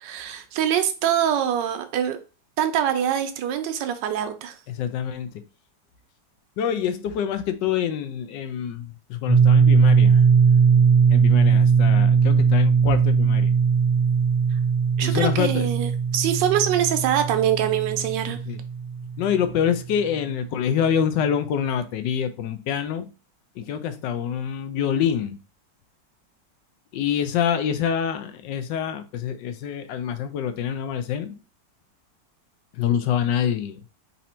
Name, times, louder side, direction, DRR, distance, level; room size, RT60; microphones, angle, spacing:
voice 1, 0.0-2.2 2.6-4.5 15.0-18.4, right 10 dB, 90° right, 1.3 m, -24 dB
voice 2, 4.7-5.4 6.6-10.3 10.7-10.8 11.1-13.5 15.0-15.7 18.3-18.6 19.2-23.1 23.6-25.4 26.9-31.4 32.7-33.9, left 8 dB, 80° left, 1.3 m, -26 dB
sound 1, 9.3-19.8, right 6 dB, 45° right, 1.0 m, -19 dB
4.1 x 2.7 x 4.2 m
omnidirectional pair, 1.9 m